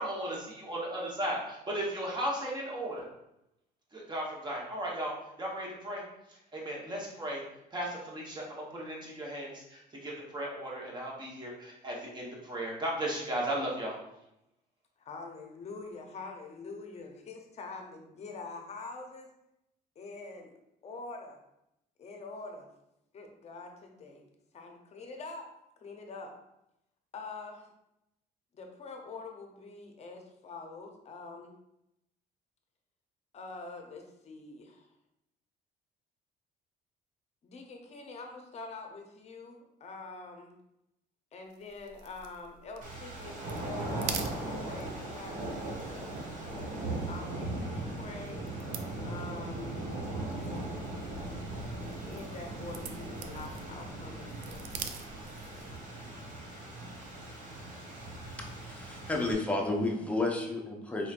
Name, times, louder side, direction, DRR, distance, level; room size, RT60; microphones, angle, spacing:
voice 1, 0.0-3.1 3.9-6.0 6.5-7.4 7.7-14.0, right 1 dB, 25° right, -2 dB, 1.1 m, -36 dB
voice 2, 15.0-19.3 20.0-20.6 20.8-21.4 22.0-22.7 23.1-24.3 24.5-25.5 25.8-26.3 27.1-27.7 28.5-31.5 33.3-34.9 37.4-40.6 41.3-46.0 47.0-48.5 49.0-49.8 52.1-55.1, left 3 dB, 40° left, 3 dB, 0.7 m, -45 dB
sound 1, 41.5-55.9, right 7 dB, 85° right, 0.4 m, -47 dB
sound 2, 42.8-59.3, right 2 dB, 50° right, 1.0 m, -39 dB
voice 3, 58.4-61.1, left 2 dB, 10° left, -1 dB, 0.7 m, -32 dB
4.3 x 3.0 x 2.5 m, 0.86 s
cardioid pair, 110°, 17 cm